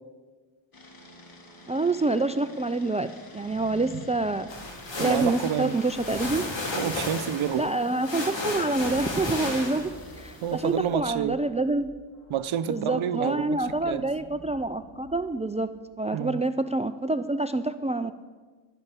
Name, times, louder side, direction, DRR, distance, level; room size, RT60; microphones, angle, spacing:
sound 1, 0.7-10.7, left 2 dB, 45° left, 2.1 m, -49 dB
voice 1, 1.7-3.1 3.3-4.5 5.0-6.5 7.6-11.9 12.7-15.7 16.0-18.1, right 2 dB, 15° right, 12 dB, 0.4 m, -27 dB
sound 2, 3.3-16.0, right 1 dB, 30° left, 4.5 m, -50 dB
sound 3, 4.5-10.1, left 2 dB, 65° left, 3.3 m, -33 dB
voice 2, 5.0-5.7 6.8-7.7 10.4-11.4 12.3-14.1 16.1-16.4, right 9 dB, 80° right, 13 dB, 0.7 m, -29 dB
11.0 x 9.8 x 8.2 m, 1.4 s
cardioid pair, 90°, 47 cm